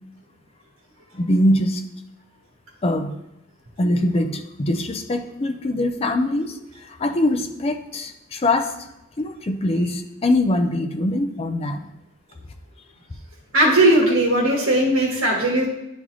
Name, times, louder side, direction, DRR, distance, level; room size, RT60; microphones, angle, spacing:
voice 1, 1.1-1.8 2.8-3.2 3.8-6.6 6.9-8.7 9.2-11.9, left 1 dB, 30° left, 6 dB, 0.5 m, -22 dB
voice 2, 13.5-15.7, right 1 dB, 75° right, -3 dB, 1.4 m, -18 dB
10.5 x 3.9 x 3.1 m, 0.89 s
head